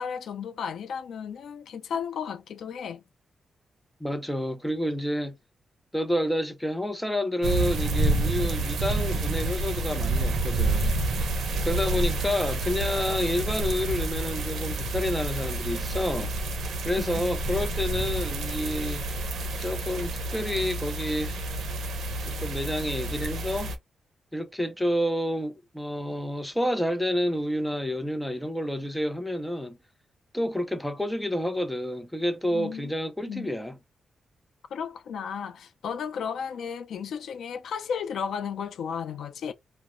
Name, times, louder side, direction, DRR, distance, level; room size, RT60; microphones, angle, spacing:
voice 1, 0.0-3.0 17.0-17.2 32.5-32.9 33.3-33.5 34.7-39.5, left 7 dB, 75° left, 0.3 m, -34 dB
voice 2, 4.0-5.3 5.9-11.2 11.6-16.3 16.8-19.0 19.6-21.4 22.3-23.7 24.3-29.8 30.3-33.8, left 1 dB, 5° left, 0.4 m, -29 dB
sound 1, 7.4-23.8, right 2 dB, 80° right, 0.6 m, -29 dB
2.3 x 2.0 x 2.9 m
wide cardioid pair, 155°, 0 cm